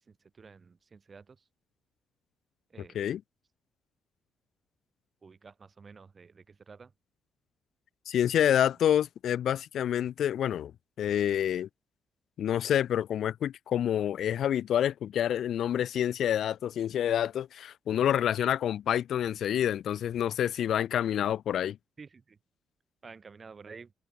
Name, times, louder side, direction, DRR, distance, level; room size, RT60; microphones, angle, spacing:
voice 1, 0.0-1.5 2.7-3.1 5.2-6.9 22.0-22.4 23.0-23.9, right 5 dB, 35° right, 5.2 m, -51 dB
voice 2, 8.1-10.7 11.0-11.7 12.4-21.8, left 10 dB, 70° left, 0.6 m, -28 dB
cardioid pair, 90°, 0 cm